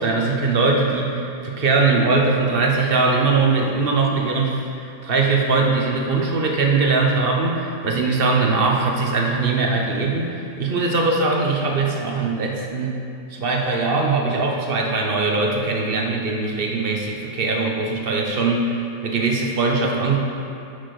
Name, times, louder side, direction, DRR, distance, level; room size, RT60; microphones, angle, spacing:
voice 1, 0.0-13.0 13.3-18.8 19.0-20.2, right 3 dB, 45° right, 0 dB, 0.7 m, -21 dB
10.0 x 6.6 x 4.8 m, 2.5 s
omnidirectional pair, 2.2 m